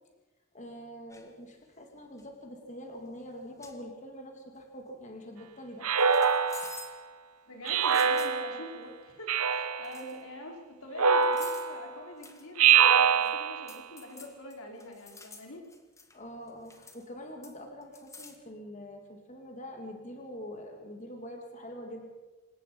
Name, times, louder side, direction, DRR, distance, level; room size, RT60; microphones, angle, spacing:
voice 1, 0.5-5.9 16.1-22.1, equal, 30° left, 3 dB, 2.9 m, -44 dB
sound 1, 1.1-1.3 2.0-2.3 3.2-3.3 3.6-3.8 6.0-7.0 7.7-8.4 9.5-9.6 9.8-10.2 11.2-11.8 12.2-12.5 12.9-13.3 13.7-16.2 16.5-17.1 17.4-18.4, left 4 dB, 15° left, 1.7 m, -49 dB
Speech synthesizer, 5.8-6.9 7.7-8.7 9.3-9.9 11.0-11.9 12.6-13.7, right 7 dB, 85° right, 1.0 m, -24 dB
voice 2, 7.5-15.6, left 1 dB, 70° left, 2 dB, 4.6 m, -44 dB
27.0 x 17.5 x 5.6 m, 1.2 s
head